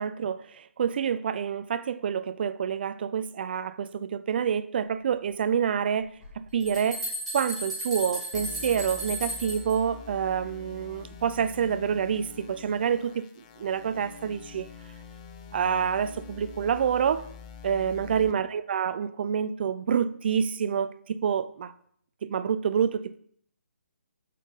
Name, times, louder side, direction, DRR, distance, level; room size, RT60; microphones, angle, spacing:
voice 1, 0.0-6.1 6.4-7.0 7.3-13.3 13.6-14.7 15.5-17.3 17.6-21.7 22.2-23.2, right 7 dB, 45° right, 14 dB, 0.4 m, -27 dB
sound 1, 6.2-6.3 6.6-9.7, right 1 dB, 5° right, 2.6 m, -34 dB
sound 2, 8.3-18.3, left 6 dB, 30° left, 0.6 m, -46 dB
8.2 x 4.1 x 3.9 m, 0.63 s
figure-of-eight pair, 145°, 8 cm